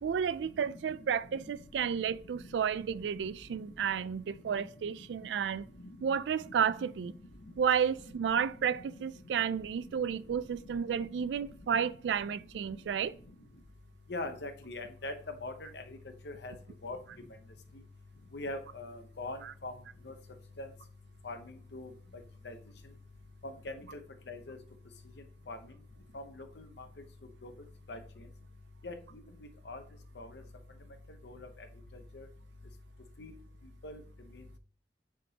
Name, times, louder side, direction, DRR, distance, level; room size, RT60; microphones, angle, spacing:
voice 1, 0.0-5.7 6.0-7.1 7.6-13.2, right 7 dB, 90° right, 0.3 m, -32 dB
voice 2, 14.1-15.1 15.4-16.0 16.2-16.5 16.8-17.0 18.3-19.7 20.0-20.1 20.6-20.7 21.2-21.9 22.4-22.6 23.4-23.8 24.3-24.6 25.5-25.6 26.1-26.8 27.4-27.5 27.9-28.0 28.8-28.9 29.7-29.8 30.2-30.4 31.2-31.5 32.1-32.3 33.2-33.3 33.8-34.0 34.3-34.4, left 2 dB, 75° left, 0.8 m, -41 dB
9.8 x 3.7 x 2.9 m
head